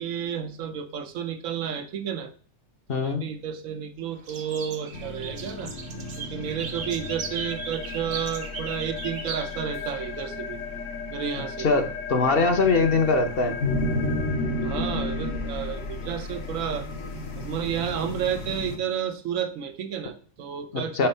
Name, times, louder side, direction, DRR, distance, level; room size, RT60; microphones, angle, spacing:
voice 1, 0.0-2.3 2.9-5.7 6.2-10.6 11.1-11.8 14.6-16.9 17.4-21.1, right 8 dB, 85° right, 8 dB, 1.1 m, -31 dB
voice 2, 2.9-3.2 11.6-13.6 21.0-21.1, left 3 dB, 50° left, 6 dB, 0.9 m, -22 dB
sound 1, 4.3-10.2, right 5 dB, 50° right, 0.8 m, -38 dB
sound 2, 4.9-18.8, left 2 dB, 70° left, 1.4 m, -33 dB
4.4 x 4.1 x 5.4 m, 0.43 s
omnidirectional pair, 1.4 m